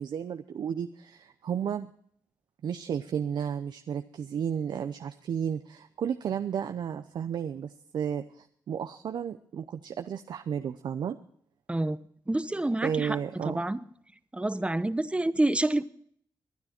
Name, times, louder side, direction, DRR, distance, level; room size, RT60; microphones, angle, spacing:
voice 1, 0.0-1.9 2.6-11.2 12.8-13.6, right 8 dB, 75° right, 8 dB, 0.7 m, -33 dB
voice 2, 12.3-13.2 13.4-13.8 14.3-15.8, right 1 dB, 15° right, 13 dB, 0.9 m, -27 dB
22.5 x 9.6 x 4.4 m, 0.62 s
cardioid pair, 65°, 8 cm